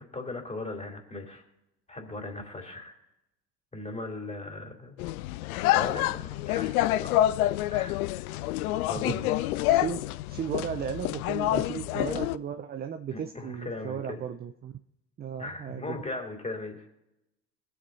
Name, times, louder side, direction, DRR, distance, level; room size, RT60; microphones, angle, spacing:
voice 1, 0.0-1.4 1.9-3.0 3.7-5.0 5.7-7.3 7.7-8.0 8.9-9.5 13.1-14.2 15.4-16.9, left 2 dB, 15° left, 2 dB, 3.1 m, -38 dB
sound 1, 5.0-12.4, left 14 dB, 65° left, 0.5 m, -27 dB
voice 2, 9.7-10.0 10.3-14.7 15.2-16.0, right 8 dB, 20° right, 7 dB, 0.5 m, -35 dB
24.5 x 8.5 x 2.7 m, 0.91 s
figure-of-eight pair, 60°, 49 cm